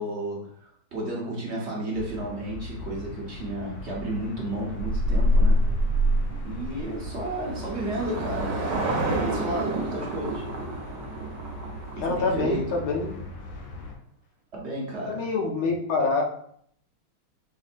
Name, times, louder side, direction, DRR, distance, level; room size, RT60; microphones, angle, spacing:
voice 1, 0.0-5.6 6.4-8.7 9.0-10.5 12.0-12.8 14.5-15.2, right 1 dB, 45° right, -3 dB, 0.9 m, -32 dB
sound 1, 1.9-13.9, left 2 dB, 65° left, 1.0 m, -39 dB
sound 2, 4.8-7.2, equal, 85° right, 1.4 m, -22 dB
Car passing by / Engine, 6.3-12.7, right 3 dB, 65° right, 1.3 m, -32 dB
voice 2, 12.0-13.2 15.1-16.2, left 3 dB, 85° left, 0 dB, 1.6 m, -26 dB
5.1 x 2.7 x 2.5 m, 0.64 s
omnidirectional pair, 2.2 m